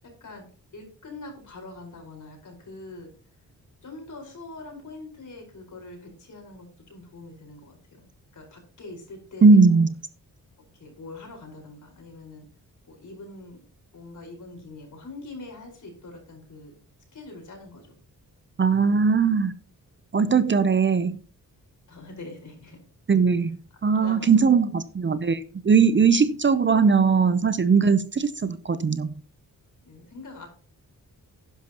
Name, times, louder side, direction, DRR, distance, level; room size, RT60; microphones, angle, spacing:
voice 1, 0.7-3.1 3.8-8.0 8.3-9.9 10.7-12.4 12.8-13.6 13.9-16.8 17.1-17.9 21.9-22.8 23.9-24.5 29.8-30.5, left 2 dB, 55° left, 4.8 m, -43 dB
voice 2, 9.4-9.9 18.6-19.5 20.1-21.2 23.1-23.6 23.8-29.1, right 5 dB, 30° right, 0.6 m, -19 dB
11.5 x 10.5 x 2.9 m
cardioid pair, 85°, 35 cm